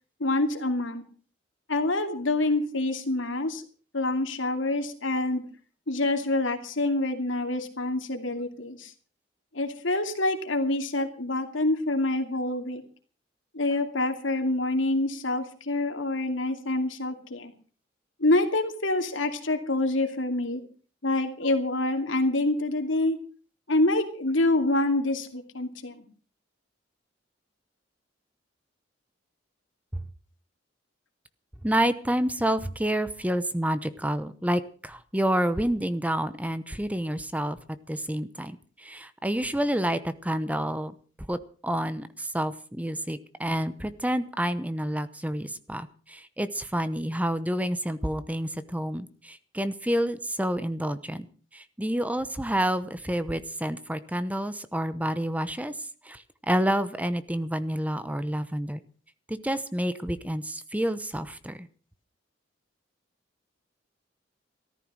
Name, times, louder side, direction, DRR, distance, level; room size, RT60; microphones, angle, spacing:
voice 1, 0.2-1.0 1.7-3.6 3.9-5.4 5.9-8.9 9.5-12.8 13.5-17.5 18.2-20.6 21.0-23.2 23.7-26.0, left 2 dB, 90° left, 6 dB, 2.6 m, -26 dB
voice 2, 31.6-37.6 37.9-40.9 41.3-41.4 41.6-51.3 51.5-55.8 56.0-58.8 59.3-61.7, right 1 dB, 10° right, 13 dB, 0.9 m, -29 dB
14.5 x 13.5 x 6.3 m, 0.40 s
head